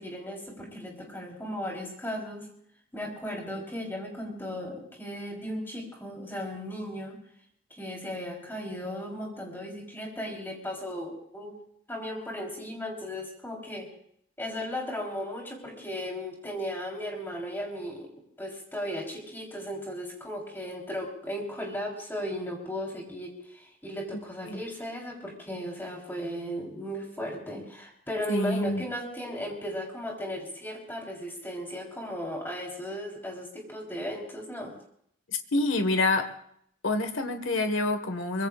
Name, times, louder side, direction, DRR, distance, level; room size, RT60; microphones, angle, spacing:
voice 1, 0.0-2.5 2.9-7.2 7.7-11.6 11.9-13.9 14.4-18.1 18.4-34.7, equal, 10° left, -2 dB, 3.8 m, -36 dB
voice 2, 28.3-28.8 35.3-36.3 36.8-38.5, left 2 dB, 70° left, 7 dB, 1.6 m, -27 dB
23.5 x 23.0 x 2.5 m, 0.69 s
head